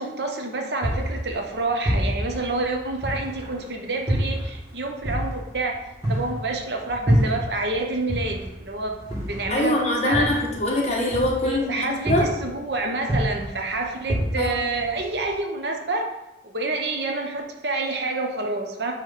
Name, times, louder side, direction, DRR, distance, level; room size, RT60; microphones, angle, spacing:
voice 1, 0.0-5.8 6.1-9.0 9.3-10.3 11.4-16.1 16.4-18.9, right 2 dB, 70° right, 3 dB, 1.0 m, -28 dB
sound 1, 0.8-3.6 4.1-7.8 8.1-11.7 12.1-12.6 13.0-15.3, equal, 20° right, 2.2 m, -27 dB
voice 2, 9.5-12.3 14.4-14.5, left 1 dB, 40° left, -1 dB, 1.4 m, -23 dB
9.0 x 3.3 x 4.3 m, 0.94 s
head